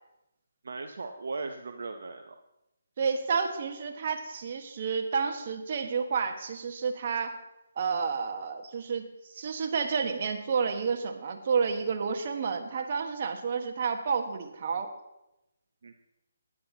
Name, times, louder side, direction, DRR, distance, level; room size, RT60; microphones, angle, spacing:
voice 1, 0.6-2.4 15.8-15.9, right 3 dB, 65° right, 5 dB, 0.8 m, -38 dB
voice 2, 3.0-7.4 7.8-14.9, right 5 dB, 45° right, 4 dB, 1.5 m, -30 dB
16.0 x 9.9 x 2.9 m, 0.92 s
figure-of-eight pair, 155°, 0 cm